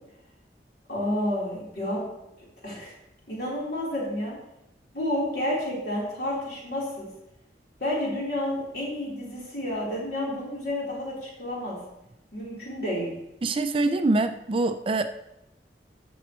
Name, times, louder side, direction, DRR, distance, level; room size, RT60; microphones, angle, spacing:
voice 1, 0.9-2.0 2.6-2.9 3.3-4.3 4.9-7.1 7.8-11.8 12.3-13.2, left 1 dB, 60° left, -5 dB, 3.8 m, -30 dB
voice 2, 13.4-15.1, right 2 dB, 30° right, 9 dB, 0.4 m, -24 dB
12.5 x 7.0 x 3.1 m, 0.88 s
head